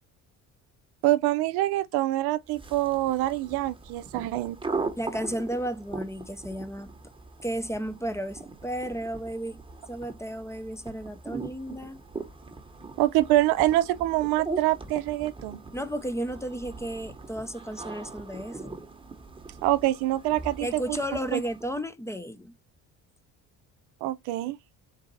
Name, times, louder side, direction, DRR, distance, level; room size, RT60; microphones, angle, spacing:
voice 1, 1.0-4.6 13.0-15.6 19.6-21.0 21.3-21.4 24.0-24.6, right 16 dB, 85° right, 0.5 m, -25 dB
sound 1, 2.5-21.8, right 3 dB, 15° right, 0.9 m, -40 dB
voice 2, 5.0-6.9 7.4-9.6 9.9-12.0 15.7-18.7 20.6-22.5, right 1 dB, 10° left, 0.5 m, -33 dB
3.9 x 2.5 x 3.9 m
cardioid pair, 90°, 37 cm